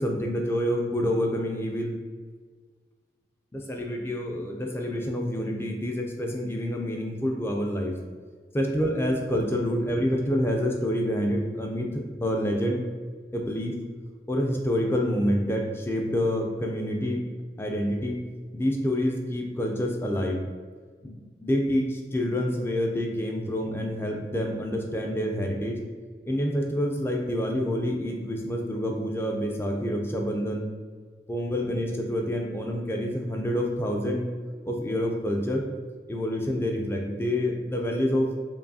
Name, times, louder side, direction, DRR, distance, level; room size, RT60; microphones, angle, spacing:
voice 1, 0.0-2.0 3.5-7.9 8.5-12.8 13.3-13.8 14.3-17.2 17.6-18.2 18.5-20.4 21.0-25.8 26.3-30.7 31.3-34.2 34.6-35.6 36.1-38.3, equal, 15° left, 1 dB, 0.3 m, -27 dB
4.6 x 2.7 x 2.7 m, 1.5 s
head